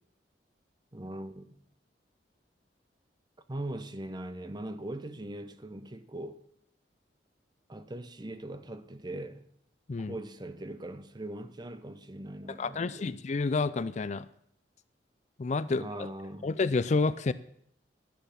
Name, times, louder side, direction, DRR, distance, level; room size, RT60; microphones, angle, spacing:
voice 1, 0.9-1.5 3.5-6.4 7.7-9.4 10.0-13.1 15.7-16.5, right 1 dB, 25° right, 0.8 m, -40 dB
voice 2, 12.6-14.3 15.4-16.1 16.4-17.3, left 3 dB, 40° left, 0.4 m, -29 dB
12.5 x 10.0 x 5.8 m
head